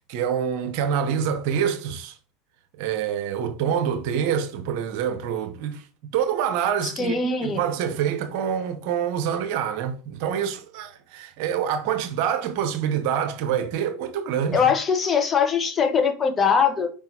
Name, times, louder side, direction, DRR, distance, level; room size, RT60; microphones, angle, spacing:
voice 1, 0.1-2.2 2.8-5.8 6.1-7.2 7.4-14.6, right 8 dB, 65° right, 0.8 m, -26 dB
voice 2, 6.8-7.6 14.5-16.9, left 6 dB, 30° left, 1.1 m, -21 dB
4.9 x 3.7 x 2.8 m
hypercardioid pair, 90°, 0 cm